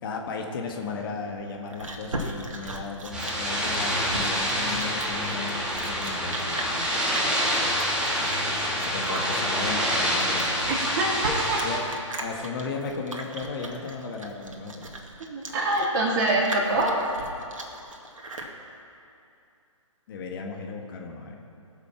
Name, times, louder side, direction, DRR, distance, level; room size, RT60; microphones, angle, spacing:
voice 1, 0.0-7.0 8.7-10.6 11.6-11.9 12.2-14.9 20.1-21.4, left 4 dB, 40° left, 1 dB, 1.6 m, -35 dB
Chewing mastication, 1.3-18.5, right 2 dB, 75° right, 1.9 m, -38 dB
sound 1, 3.1-11.8, equal, 5° right, 2.2 m, -27 dB
voice 2, 10.7-11.6 15.2-16.9, right 2 dB, 40° right, -3 dB, 3.4 m, -25 dB
20.5 x 6.9 x 5.9 m, 2.6 s
figure-of-eight pair, 135°, 17 cm